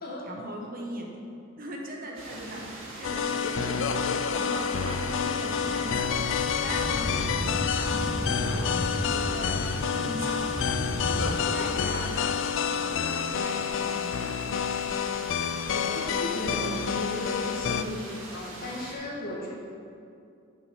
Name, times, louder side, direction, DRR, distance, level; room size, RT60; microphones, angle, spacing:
voice 1, 0.2-1.2 1.6-14.4 15.8-16.1, right 1 dB, 45° right, 0 dB, 1.3 m, -39 dB
sound 1, 2.1-18.9, right 1 dB, 70° right, 2.0 m, -42 dB
sound 2, 3.0-17.8, left 7 dB, 65° left, 0.4 m, -29 dB
sound 3, 4.7-11.4, equal, 35° left, 1.2 m, -35 dB
voice 2, 15.6-19.5, left 1 dB, 50° left, -3 dB, 1.9 m, -36 dB
7.1 x 6.4 x 7.1 m, 2.5 s
head